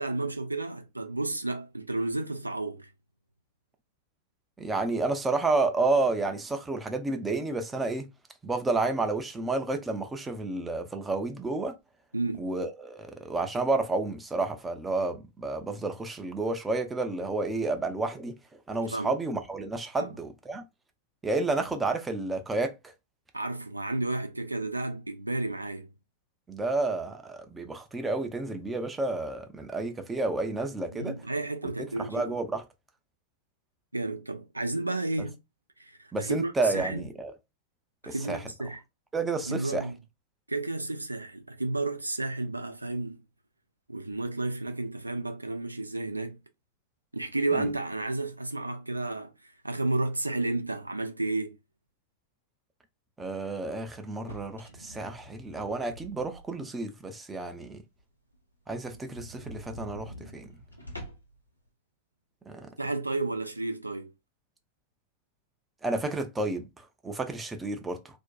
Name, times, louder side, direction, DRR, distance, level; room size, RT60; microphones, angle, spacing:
voice 1, 0.0-2.9 12.1-12.5 18.9-19.1 20.0-20.1 23.3-25.9 30.9-32.4 33.9-35.4 35.8-37.0 38.0-38.8 39.4-40.0 40.5-43.2 43.9-46.4 47.1-51.6 62.8-64.1, right 2 dB, 85° right, 0.3 m, -32 dB
voice 2, 4.6-8.1 8.4-11.7 12.4-18.4 18.7-20.6 21.2-22.7 26.5-31.2 32.0-32.6 36.1-37.3 38.1-38.4 39.1-39.9 47.5-47.7 53.2-57.8 58.7-60.5 62.5-62.7 65.8-68.2, right 3 dB, 10° right, 0.5 m, -30 dB
sound 1, 54.1-56.7 57.1-57.2 57.6-57.7 58.0-58.1 58.3-58.4 58.8-61.4, equal, 85° left, 0.7 m, -45 dB
2.5 x 2.1 x 2.3 m
figure-of-eight pair, 90°, 0 cm